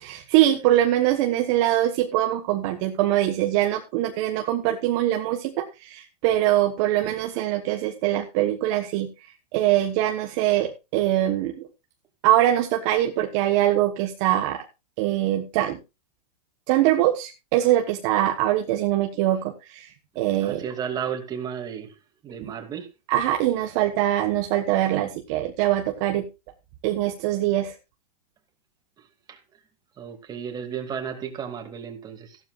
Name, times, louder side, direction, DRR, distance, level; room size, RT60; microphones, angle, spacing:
voice 1, 0.0-9.1 9.5-11.5 12.2-14.6 15.0-15.8 16.7-19.9 20.1-20.6 22.4-22.5 23.1-26.3 26.8-27.7, right 13 dB, 45° right, 4 dB, 1.3 m, -23 dB
voice 2, 20.4-21.9 22.2-22.9 29.3-29.4 30.0-32.4, right 8 dB, 20° right, 3 dB, 2.5 m, -33 dB
15.0 x 12.0 x 2.5 m, 0.27 s
hypercardioid pair, 145°, 21 cm